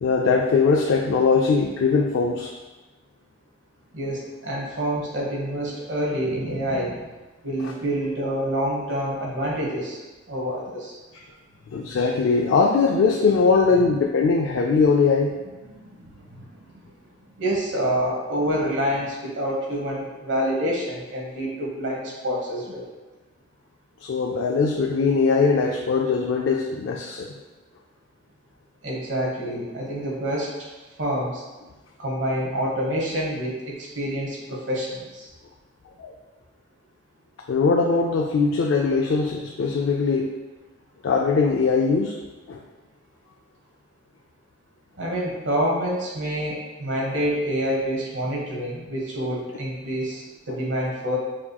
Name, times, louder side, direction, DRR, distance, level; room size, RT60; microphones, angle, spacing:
voice 1, 0.0-2.5 11.1-11.2 11.7-15.4 24.0-27.3 36.0-36.1 37.5-40.3 41.0-42.2 42.5-42.6, left 4 dB, 90° left, 1 dB, 0.4 m, -21 dB
voice 2, 3.9-7.0 7.4-10.0 10.3-11.0 13.7-13.8 15.6-15.7 16.3-16.4 17.4-22.9 28.8-30.7 31.0-31.4 32.0-35.3 45.0-51.2, equal, 80° right, -3 dB, 1.2 m, -27 dB
6.0 x 2.9 x 2.3 m, 1.2 s
head